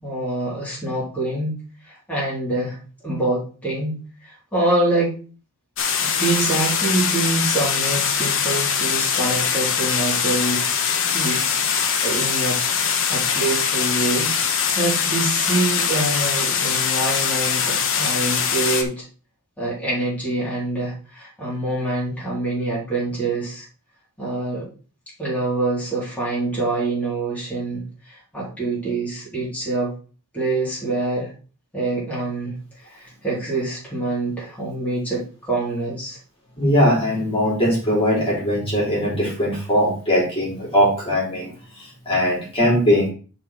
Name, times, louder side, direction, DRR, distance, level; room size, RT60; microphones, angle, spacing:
voice 1, 0.0-2.8 3.0-5.1 6.0-10.7 11.1-12.6 13.1-19.0 19.6-23.7 24.2-24.7 25.2-29.9 30.3-31.3 31.7-36.2, right 2 dB, 5° left, -7 dB, 3.1 m, -25 dB
sound 1, 5.8-18.8, left 7 dB, 60° left, 1.2 m, -22 dB
voice 2, 36.6-43.1, equal, 25° left, -4 dB, 3.3 m, -20 dB
10.0 x 4.3 x 4.1 m, 0.38 s
head